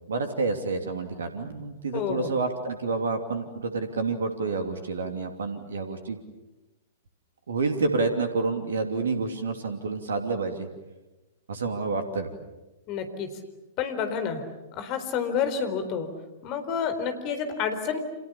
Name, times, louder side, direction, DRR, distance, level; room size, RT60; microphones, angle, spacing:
voice 1, 0.1-6.2 7.5-10.7 11.5-12.3, right 4 dB, 65° right, 7 dB, 2.9 m, -29 dB
voice 2, 1.9-2.3 12.9-13.3 13.8-14.4 14.7-16.1 16.4-18.0, left 7 dB, 35° left, 8 dB, 4.1 m, -29 dB
30.0 x 27.5 x 7.2 m, 1.1 s
figure-of-eight pair, 105°, 0 cm